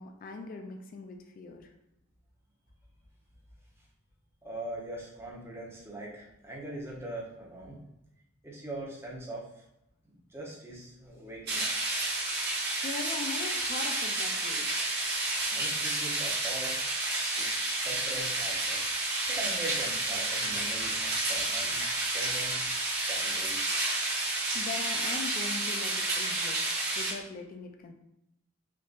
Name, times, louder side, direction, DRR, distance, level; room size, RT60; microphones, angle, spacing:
voice 1, 0.0-1.7 12.8-14.7 24.5-27.9, left 4 dB, 40° left, 4 dB, 0.3 m, -41 dB
voice 2, 4.4-7.8 8.4-9.6 10.3-11.7 15.5-16.7 17.4-18.8 19.3-22.5 23.1-23.8, right 1 dB, 15° right, -4 dB, 0.7 m, -41 dB
sound 1, 11.5-27.1, right 2 dB, 50° right, 0.8 m, -30 dB
3.4 x 2.6 x 2.4 m, 0.86 s
head